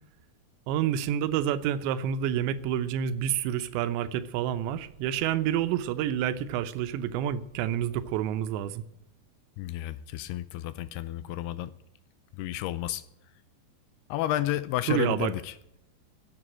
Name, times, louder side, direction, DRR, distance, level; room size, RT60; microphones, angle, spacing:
voice 1, 0.7-8.8 14.9-15.3, right 10 dB, 90° right, 12 dB, 3.1 m, -28 dB
voice 2, 9.6-11.7 12.3-13.0 14.1-15.6, left 13 dB, 80° left, 15 dB, 2.4 m, -31 dB
11.0 x 9.2 x 10.0 m, 0.83 s
omnidirectional pair, 5.0 m